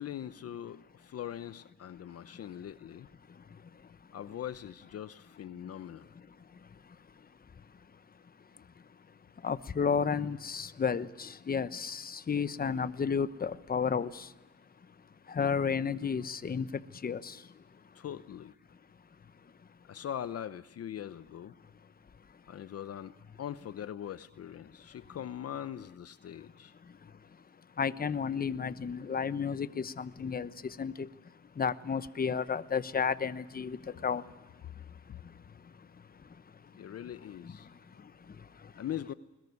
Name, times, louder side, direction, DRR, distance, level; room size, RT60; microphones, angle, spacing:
voice 1, 0.0-3.1 4.1-6.1 17.9-18.5 19.9-21.6 22.5-26.7 35.1-35.2 36.8-37.7 37.9-38.0 38.8-39.1, left 10 dB, 55° left, 0.8 m, -41 dB
voice 2, 3.3-4.1 5.6-5.7 6.3-14.4 14.8-18.0 19.3-19.7 22.3-22.5 26.8-36.9 37.4-38.8, left 6 dB, 30° left, 1.0 m, -35 dB
21.5 x 21.0 x 9.5 m
cardioid pair, 90°, 30 cm